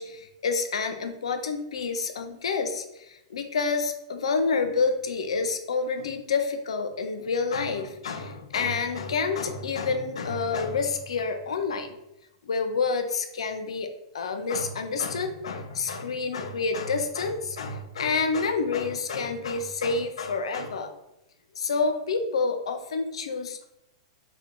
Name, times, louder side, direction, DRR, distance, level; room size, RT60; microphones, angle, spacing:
voice 1, 0.0-12.0 12.4-13.9 14.1-21.0 21.6-23.6, left 4 dB, 85° left, 7 dB, 0.6 m, -28 dB
4.4 x 2.2 x 3.6 m, 0.88 s
hypercardioid pair, 125°, 3 cm